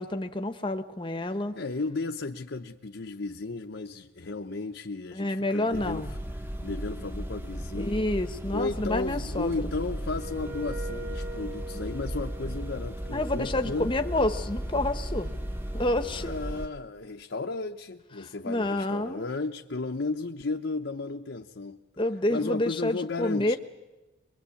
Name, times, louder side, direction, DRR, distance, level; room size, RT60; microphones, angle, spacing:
voice 1, 0.0-1.5 5.1-6.1 7.7-9.5 13.1-15.3 15.7-16.3 18.2-19.3 22.0-23.6, left 1 dB, 25° left, 7 dB, 1.0 m, -29 dB
voice 2, 1.5-6.1 6.4-8.0 8.5-13.9 16.1-21.8 22.3-23.6, left 3 dB, 60° left, 3 dB, 0.8 m, -34 dB
sound 1, 5.7-16.7, equal, 10° right, 1.1 m, -35 dB
Wind instrument woodwind instrument, 10.1-16.8, right 2 dB, 45° right, 3.1 m, -44 dB
23.0 x 23.0 x 8.4 m, 1.1 s
head